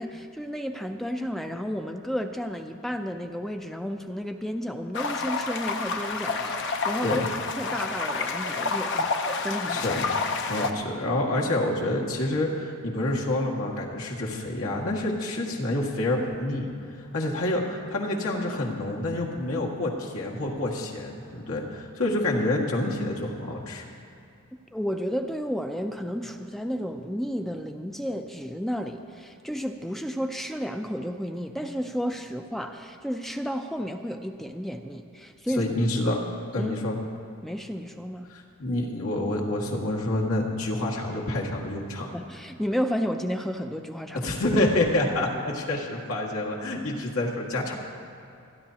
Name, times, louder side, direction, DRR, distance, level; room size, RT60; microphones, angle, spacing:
voice 1, 0.0-7.2 7.6-9.1 9.4-9.8 24.7-35.7 36.6-36.7 37.4-38.3 42.1-44.3, equal, ahead, 5 dB, 0.4 m, -32 dB
sound 1, 4.9-10.7, left 4 dB, 55° left, 0.8 m, -29 dB
voice 2, 9.7-23.9 35.6-36.2 36.5-37.0 38.3-42.1 44.1-47.7, left 1 dB, 80° left, -2 dB, 1.9 m, -28 dB
28.5 x 10.5 x 2.9 m, 2.6 s
head